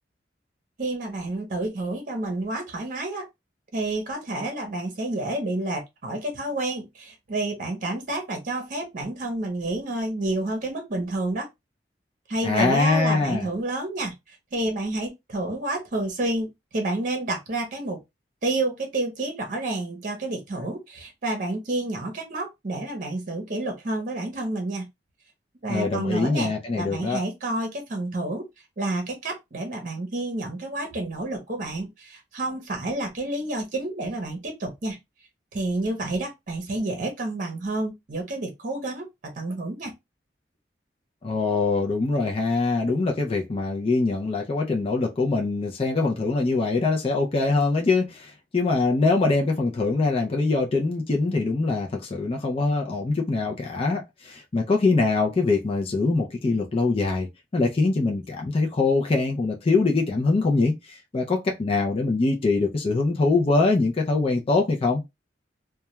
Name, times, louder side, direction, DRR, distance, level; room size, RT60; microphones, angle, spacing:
voice 1, 0.8-3.3 3.7-11.5 12.3-14.1 14.5-18.0 18.4-24.9 25.6-28.5 28.8-35.0 35.5-39.1 39.4-39.9, right 2 dB, 50° right, 0.8 m, -29 dB
voice 2, 12.4-13.5 25.7-27.2 41.2-57.3 57.5-65.0, left 3 dB, 35° left, 0.4 m, -23 dB
2.2 x 2.2 x 2.9 m
head